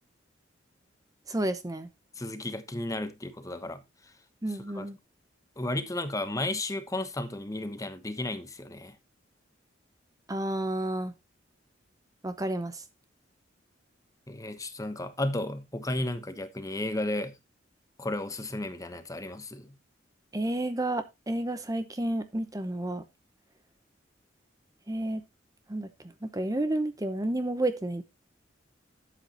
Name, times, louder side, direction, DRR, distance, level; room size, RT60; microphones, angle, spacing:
voice 1, 1.3-1.9 4.4-5.0 10.3-11.1 12.2-12.8 20.3-23.0 24.9-25.2 25.7-25.9 26.2-28.0, right 1 dB, 20° right, 0.8 m, -30 dB
voice 2, 2.2-3.8 4.7-4.9 5.6-8.9 14.3-17.4 18.0-19.8, left 1 dB, 20° left, 1.0 m, -33 dB
12.0 x 8.2 x 3.0 m
head